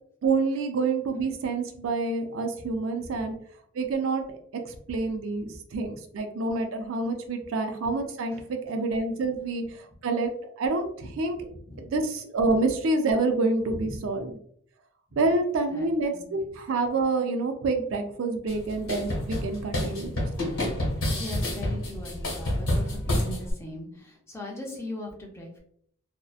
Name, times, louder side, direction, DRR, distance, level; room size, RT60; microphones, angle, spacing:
voice 1, 0.2-3.3 3.7-4.2 4.5-10.3 10.6-11.4 11.8-14.4 15.1-20.3, right 3 dB, 65° right, 5 dB, 0.4 m, -27 dB
voice 2, 11.5-12.0 13.7-14.0 15.1-15.2 15.7-15.9 16.1-16.2 21.1-25.6, left 1 dB, 10° left, -1 dB, 0.5 m, -39 dB
sound 1, 18.5-23.5, left 1 dB, 90° left, 1.1 m, -29 dB
2.6 x 2.1 x 2.3 m, 0.64 s
head